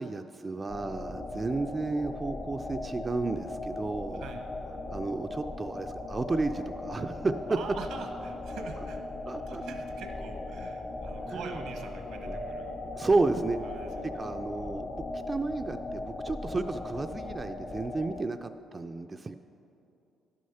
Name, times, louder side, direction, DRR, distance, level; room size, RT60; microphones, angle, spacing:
voice 1, 0.0-4.2 4.9-7.3 9.2-9.6 11.3-11.6 12.2-12.4 12.9-13.6 14.2-19.3, right 3 dB, 25° right, 7 dB, 0.3 m, -32 dB
sound 1, 0.7-18.2, left 2 dB, 40° left, 0.9 m, -38 dB
voice 2, 7.5-12.8 13.6-14.0, right 5 dB, 80° right, 5 dB, 0.9 m, -44 dB
11.0 x 6.4 x 5.6 m, 2.8 s
cardioid pair, 90°, 0 cm